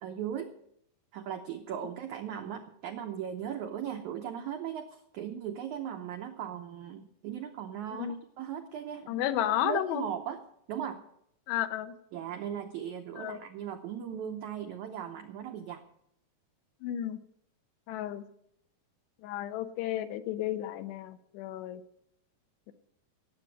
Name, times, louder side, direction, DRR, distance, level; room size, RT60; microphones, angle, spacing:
voice 1, 0.0-0.5 1.1-9.2 9.6-10.4 10.7-11.0 12.1-15.8, right 9 dB, 85° right, 5 dB, 1.7 m, -38 dB
voice 2, 9.1-10.1 11.5-11.9 13.2-13.4 16.8-17.2 17.9-18.2 19.2-21.8, left 12 dB, 85° left, 9 dB, 3.2 m, -32 dB
18.0 x 7.8 x 7.6 m, 0.73 s
omnidirectional pair, 4.8 m